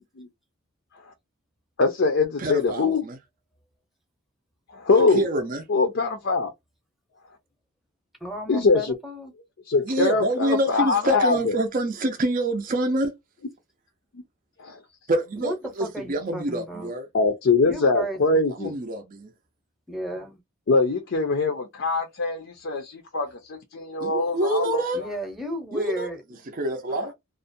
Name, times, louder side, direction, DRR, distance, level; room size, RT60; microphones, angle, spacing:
voice 1, 1.8-3.0 4.7-5.3 5.7-6.5 8.5-8.9 9.7-11.6 14.6-14.8 17.1-18.7 20.7-24.8, left 3 dB, 60° left, 0.5 m, -23 dB
voice 2, 2.4-3.2 5.1-5.6 9.9-13.1 15.1-17.1 18.6-19.3 24.0-25.0 25.7-26.1 26.5-27.1, right 1 dB, 40° right, 0.5 m, -26 dB
voice 3, 8.2-9.3 15.4-15.5 15.8-16.9 17.6-18.4 19.9-20.4 24.9-26.4, equal, ahead, 0.7 m, -33 dB
2.4 x 2.1 x 2.6 m
head